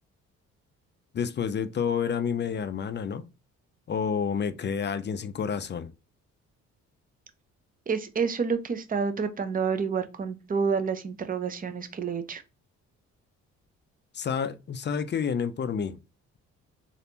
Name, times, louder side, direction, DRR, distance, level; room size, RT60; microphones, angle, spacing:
voice 1, 1.1-3.3 3.9-5.9 14.1-16.0, left 7 dB, 35° left, 0.4 m, -29 dB
voice 2, 7.9-12.4, right 5 dB, 25° right, 0.6 m, -29 dB
3.3 x 2.6 x 2.8 m
supercardioid pair, 55°, 33 cm